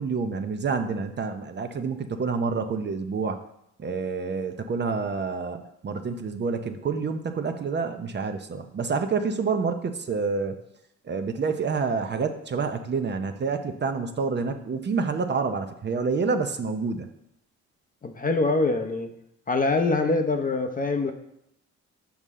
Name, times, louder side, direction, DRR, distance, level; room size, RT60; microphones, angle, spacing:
voice 1, 0.0-3.4 3.8-10.6 11.0-17.1, right 4 dB, 35° right, 7 dB, 0.6 m, -28 dB
voice 2, 18.0-19.1 19.5-21.1, left 3 dB, 30° left, 5 dB, 0.7 m, -24 dB
7.1 x 5.5 x 3.7 m, 0.78 s
cardioid pair, 90°, 30 cm